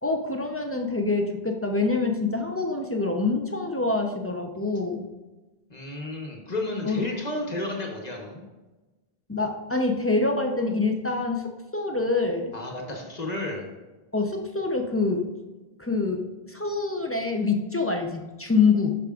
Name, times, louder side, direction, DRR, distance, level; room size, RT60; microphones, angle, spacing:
voice 1, 0.0-5.0 6.8-7.0 9.3-12.6 14.1-15.2 15.8-19.0, left 3 dB, 15° left, 3 dB, 0.5 m, -26 dB
voice 2, 5.7-8.4 12.5-13.6, left 2 dB, 40° left, 0 dB, 1.2 m, -32 dB
11.5 x 4.9 x 2.4 m, 1.2 s
omnidirectional pair, 1.1 m